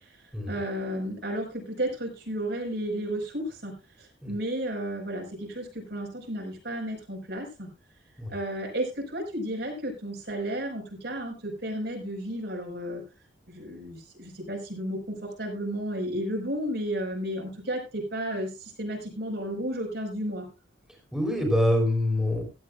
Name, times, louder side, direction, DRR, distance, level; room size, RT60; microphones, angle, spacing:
voice 1, 0.5-3.7 4.3-7.7 8.3-13.0 13.5-18.5 18.8-20.5, right 1 dB, 60° right, 1 dB, 5.2 m, -32 dB
voice 2, 21.1-22.4, left 1 dB, 5° right, 1 dB, 4.2 m, -25 dB
16.0 x 12.5 x 2.5 m, 0.29 s
head